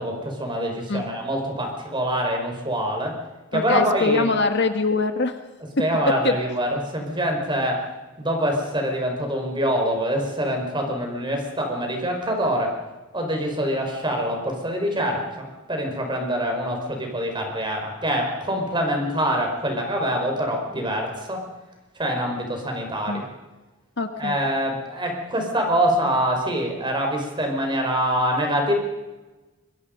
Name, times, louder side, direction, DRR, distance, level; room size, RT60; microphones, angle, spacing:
voice 1, 0.0-3.2 3.5-4.3 5.8-7.9 8.2-12.8 13.1-21.4 22.0-23.3 24.2-28.7, equal, 20° right, 2 dB, 5.2 m, -25 dB
voice 2, 3.5-5.4 6.2-6.4 23.1-23.2 24.0-24.4, left 3 dB, 55° left, 7 dB, 1.6 m, -23 dB
25.5 x 23.5 x 5.4 m, 1.2 s
head